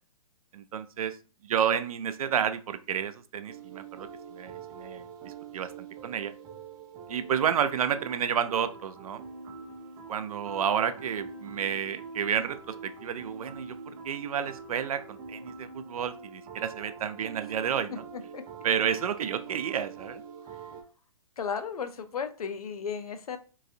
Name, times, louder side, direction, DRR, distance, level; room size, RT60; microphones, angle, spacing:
voice 1, 0.5-1.2 1.4-4.1 4.3-6.3 7.1-9.2 10.1-18.0 18.6-20.2, right 8 dB, 75° right, 11 dB, 0.5 m, -30 dB
sound 1, 3.5-20.8, right 5 dB, 20° right, 0.5 m, -45 dB
voice 2, 17.9-18.4 21.4-23.4, left 6 dB, 85° left, 9 dB, 0.6 m, -35 dB
3.9 x 2.5 x 2.7 m, 0.35 s
hypercardioid pair, 140°, 18 cm